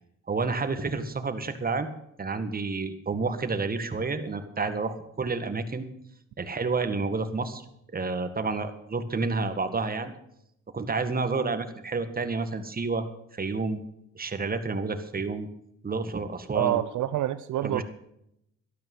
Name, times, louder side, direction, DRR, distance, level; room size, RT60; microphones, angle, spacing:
voice 1, 0.3-1.9 2.2-5.9 6.4-7.7 7.9-10.1 10.7-13.1 13.3-13.8 14.2-15.5 15.8-16.8 17.6-17.8, right 4 dB, 30° right, 9 dB, 1.9 m, -29 dB
voice 2, 16.5-17.8, right 13 dB, 75° right, 13 dB, 0.7 m, -27 dB
12.5 x 12.5 x 5.5 m, 0.77 s
cardioid pair, 90°, 30 cm